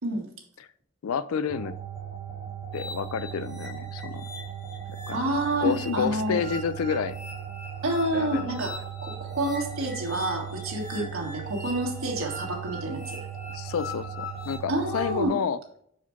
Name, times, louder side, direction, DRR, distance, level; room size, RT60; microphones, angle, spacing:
voice 1, 1.0-1.7 2.7-4.2 5.1-5.2 5.6-7.2 8.1-8.5 10.9-11.1 13.5-15.6, left 6 dB, 85° left, 16 dB, 0.4 m, -29 dB
sound 1, 1.5-15.3, right 9 dB, 20° right, 1.2 m, -38 dB
sound 2, 2.7-14.6, left 2 dB, 50° left, 2.8 m, -43 dB
voice 2, 5.1-6.4 7.8-8.7 9.0-13.2 14.7-15.4, right 1 dB, 75° right, 0 dB, 1.7 m, -28 dB
5.7 x 4.8 x 4.5 m, 0.68 s
head